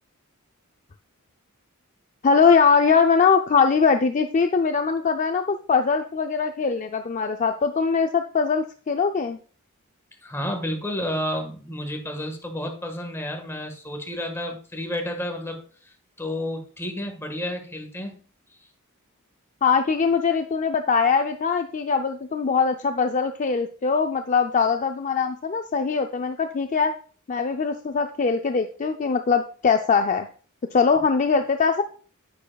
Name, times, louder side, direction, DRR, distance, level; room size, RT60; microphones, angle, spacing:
voice 1, 2.2-9.4 19.6-26.9 27.3-30.3 30.7-31.8, left 5 dB, 35° left, 6 dB, 0.4 m, -21 dB
voice 2, 10.2-18.2, left 1 dB, 10° left, 3 dB, 1.5 m, -31 dB
9.6 x 9.1 x 2.3 m, 0.41 s
head